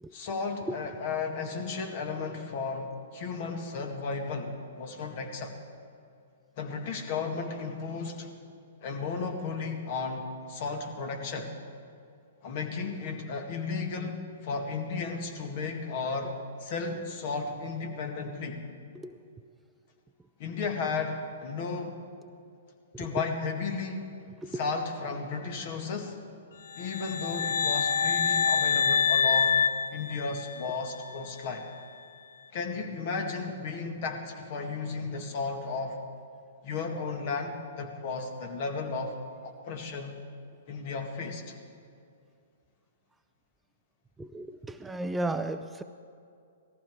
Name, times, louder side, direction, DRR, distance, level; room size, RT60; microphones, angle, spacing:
voice 1, 0.1-5.5 6.6-8.3 8.8-11.5 12.4-18.6 20.4-22.0 23.0-24.1 24.5-26.2 26.8-29.6 29.9-31.7 32.5-36.0 36.6-39.1 39.4-40.2 40.7-41.6, left 4 dB, 50° left, 4 dB, 2.0 m, -34 dB
sound 1, 26.7-30.7, left 6 dB, 70° left, 0.5 m, -26 dB
voice 2, 44.2-45.8, right 2 dB, 10° right, 9 dB, 0.5 m, -34 dB
18.5 x 14.5 x 4.8 m, 2.4 s
hypercardioid pair, 120°, 0 cm